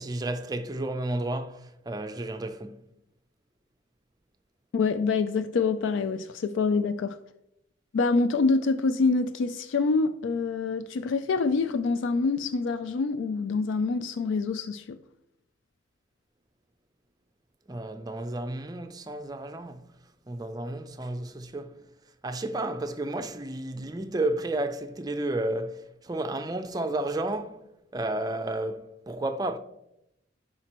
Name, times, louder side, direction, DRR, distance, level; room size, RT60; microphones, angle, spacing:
voice 1, 0.0-2.8 17.7-19.8 20.3-21.8 22.2-27.6 27.9-29.6, right 2 dB, 20° right, 0.5 m, -32 dB
voice 2, 4.7-7.2 7.9-15.0, left 4 dB, 70° left, 0.3 m, -26 dB
11.0 x 5.0 x 3.0 m
head